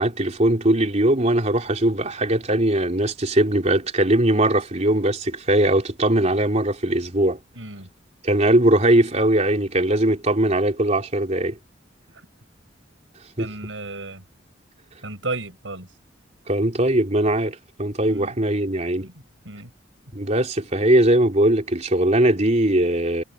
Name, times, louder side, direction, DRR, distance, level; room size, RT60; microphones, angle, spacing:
voice 1, 0.0-7.4 8.2-11.6 13.4-13.5 16.5-19.1 20.1-23.2, right 1 dB, 40° right, 3.5 m, -20 dB
voice 2, 7.6-7.9 13.4-14.2 15.0-15.9 18.1-18.4 19.0-19.1 19.5-19.7, right 2 dB, 85° right, 7.4 m, -33 dB
head